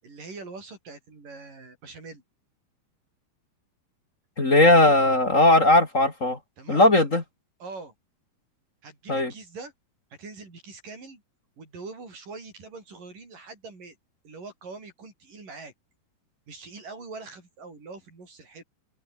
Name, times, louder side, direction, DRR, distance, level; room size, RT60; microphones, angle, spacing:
voice 1, 0.0-2.2 4.7-5.0 6.6-6.9 7.6-7.9 8.8-9.7 10.2-11.2 11.6-14.0 14.2-15.7 16.5-18.6, right 3 dB, 50° right, 9.2 m, -43 dB
voice 2, 4.4-6.4 6.7-7.2 9.1-9.3, left 1 dB, 25° left, 2.1 m, -18 dB
open air
omnidirectional pair, 4.8 m